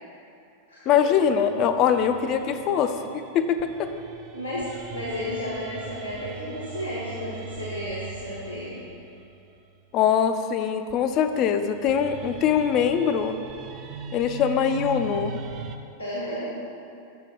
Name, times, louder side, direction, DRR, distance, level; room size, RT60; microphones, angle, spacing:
voice 1, 0.9-3.9 9.9-13.4 14.1-15.4, left 8 dB, 35° left, 9 dB, 0.4 m, -23 dB
sound 1, 0.9-10.0 10.9-15.8, right 6 dB, 35° right, 0.5 m, -41 dB
voice 2, 4.3-8.8 16.0-16.5, left 1 dB, 85° left, -6 dB, 1.3 m, -32 dB
6.8 x 6.5 x 3.8 m, 2.6 s
figure-of-eight pair, 90°, 0 cm